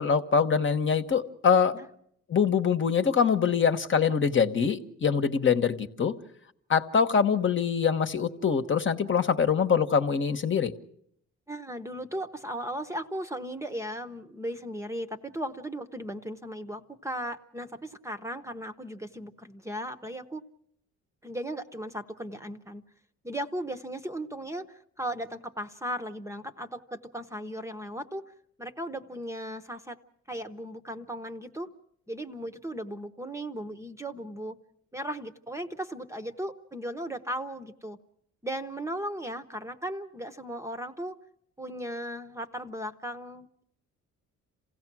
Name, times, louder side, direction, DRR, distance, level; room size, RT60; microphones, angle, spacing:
voice 1, 0.0-1.8 2.3-6.1 6.7-10.7, left 6 dB, 40° left, 8 dB, 1.2 m, -24 dB
voice 2, 11.5-20.4 21.2-22.8 23.2-28.2 28.6-30.0 30.3-31.7 32.1-34.6 34.9-38.0 38.4-41.2 41.6-43.6, right 1 dB, 10° right, 9 dB, 0.9 m, -36 dB
27.5 x 16.5 x 6.1 m, 0.73 s
cardioid pair, 90°, 30 cm